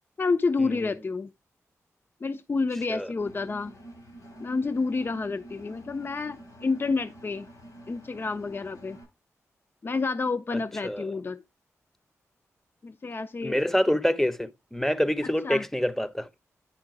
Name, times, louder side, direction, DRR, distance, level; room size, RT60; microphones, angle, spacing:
voice 1, 0.2-1.3 2.2-3.7 4.4-7.5 7.9-9.0 9.8-11.4 12.8-13.6 15.4-15.6, left 4 dB, 40° left, 0.6 m, -29 dB
Engine, 3.2-9.0, right 1 dB, 80° left, 6.1 m, -48 dB
voice 2, 10.5-11.2 13.4-16.3, equal, 5° left, 0.7 m, -27 dB
9.9 x 3.7 x 4.7 m
cardioid pair, 60°, 6 cm